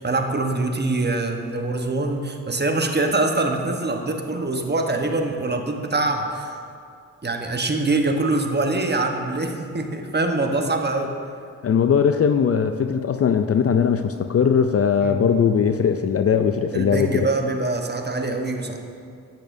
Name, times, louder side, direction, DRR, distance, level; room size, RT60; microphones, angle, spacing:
voice 1, 0.0-6.5 7.2-11.1 15.0-15.4 16.7-18.8, right 2 dB, 25° right, 4 dB, 1.1 m, -24 dB
voice 2, 11.6-17.3, left 7 dB, 40° left, 8 dB, 0.4 m, -20 dB
10.5 x 9.0 x 2.6 m, 2.3 s
supercardioid pair, 40°, 37 cm